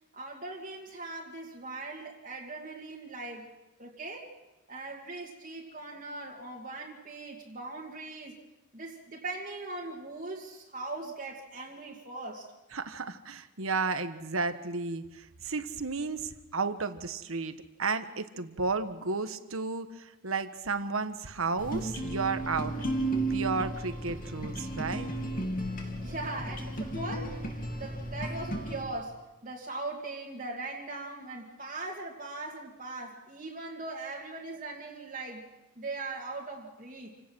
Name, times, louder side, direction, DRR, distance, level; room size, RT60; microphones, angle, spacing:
voice 1, 0.1-3.4 3.8-4.3 4.7-8.3 8.7-12.5 25.8-27.4 27.8-35.4 35.8-37.1, right 2 dB, 40° right, -2 dB, 2.2 m, -40 dB
voice 2, 12.7-17.5 17.8-22.7 23.3-25.1, right 4 dB, 75° right, 10 dB, 1.3 m, -33 dB
sound 1, 21.6-28.8, right 1 dB, 40° left, 3.0 m, -34 dB
28.0 x 17.5 x 6.3 m, 1.0 s
head